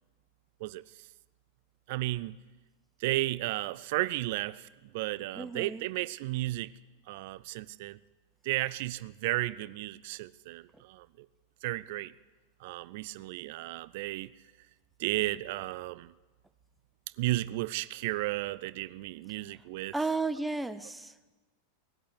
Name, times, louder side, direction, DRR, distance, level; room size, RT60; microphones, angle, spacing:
voice 1, 1.9-2.4 3.0-4.7 4.9-6.7 7.1-8.0 8.4-11.3 11.6-12.1 12.6-14.3 15.0-16.1 17.2-19.9, right 18 dB, 50° right, 0.4 m, -33 dB
voice 2, 5.4-5.8 19.9-21.3, right 3 dB, 5° right, 0.7 m, -33 dB
18.0 x 8.4 x 9.7 m
figure-of-eight pair, 90°, 0 cm